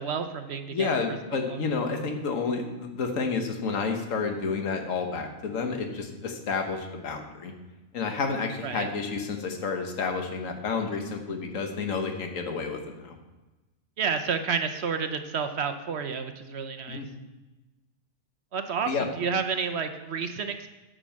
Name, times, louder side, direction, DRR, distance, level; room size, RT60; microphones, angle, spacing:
voice 1, 0.0-1.0 1.3-1.6 8.6-8.9 14.0-17.0 18.5-20.7, right 6 dB, 55° right, 8 dB, 0.8 m, -30 dB
voice 2, 0.7-7.5 7.9-13.1 16.9-17.1 18.9-19.1, left 4 dB, 65° left, 4 dB, 1.5 m, -30 dB
10.0 x 5.1 x 7.4 m, 1.1 s
omnidirectional pair, 1.5 m